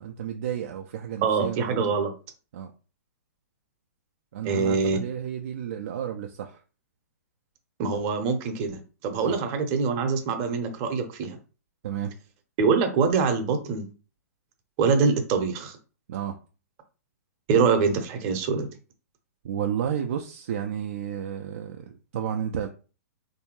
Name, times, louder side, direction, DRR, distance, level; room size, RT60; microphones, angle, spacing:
voice 1, 0.0-2.0 2.5-2.7 4.3-6.6 9.2-9.4 11.8-12.1 16.1-16.4 19.4-22.7, right 9 dB, 55° right, 0.4 m, -32 dB
voice 2, 1.2-2.1 4.4-5.0 7.8-11.4 12.6-13.9 14.8-15.8 17.5-18.7, right 5 dB, 35° right, 0.8 m, -24 dB
3.4 x 2.7 x 3.0 m
figure-of-eight pair, 115°, 9 cm